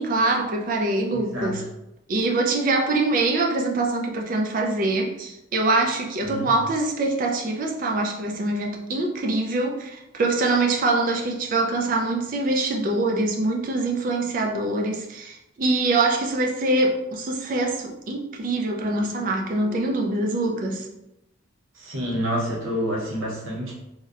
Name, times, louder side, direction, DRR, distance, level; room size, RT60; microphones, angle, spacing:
voice 1, 0.0-1.6 2.1-20.9, right 2 dB, 40° right, 1 dB, 0.3 m, -24 dB
voice 2, 1.1-1.6 6.2-6.5 21.7-23.7, equal, 80° right, -4 dB, 0.8 m, -28 dB
2.7 x 2.1 x 2.4 m, 0.88 s
head